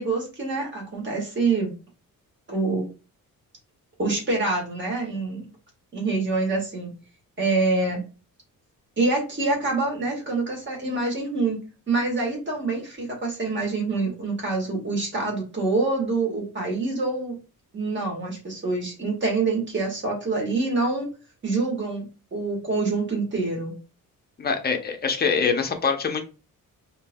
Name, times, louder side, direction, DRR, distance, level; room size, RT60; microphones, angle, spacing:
voice 1, 0.0-1.7 2.5-2.8 4.0-5.5 5.9-6.9 7.4-8.0 9.0-11.6 11.9-17.4 17.7-21.1 21.4-22.0 22.3-23.7, right 3 dB, 30° right, 1.6 m, -26 dB
voice 2, 24.4-26.2, left 5 dB, 25° left, 0.6 m, -24 dB
5.0 x 2.8 x 2.2 m
wide cardioid pair, 165°, 35 cm